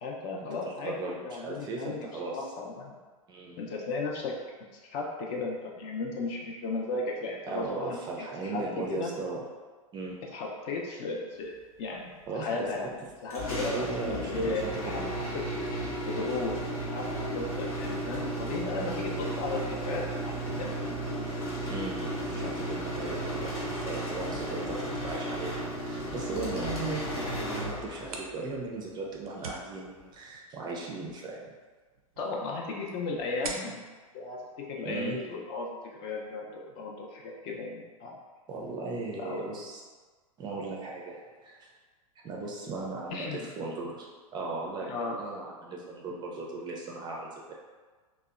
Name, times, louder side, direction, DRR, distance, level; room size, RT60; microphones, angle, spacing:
voice 1, 0.0-2.1 2.3-3.0 3.6-4.3 4.7-9.1 10.3-12.8 13.2-13.7 14.0-15.0 15.3-15.4 16.1-16.5 16.9-21.3 32.2-38.2 39.2-39.5 43.1-43.5 44.9-45.2, left 3 dB, 40° left, 0 dB, 0.5 m, -35 dB
voice 2, 0.6-2.5 3.3-3.6 7.5-9.4 9.9-10.2 12.3-12.9 13.6-15.1 21.7-25.6 25.8-31.5 34.8-35.2 38.5-39.8 40.4-41.7 42.2-44.9 45.2-47.5, right 3 dB, 25° right, -2 dB, 0.4 m, -37 dB
sound 1, 13.3-28.2, right 1 dB, 90° left, 0.8 m, -34 dB
sound 2, 27.8-35.3, right 3 dB, 85° right, 0.4 m, -46 dB
2.7 x 2.0 x 2.3 m, 1.4 s
hypercardioid pair, 105°, 18 cm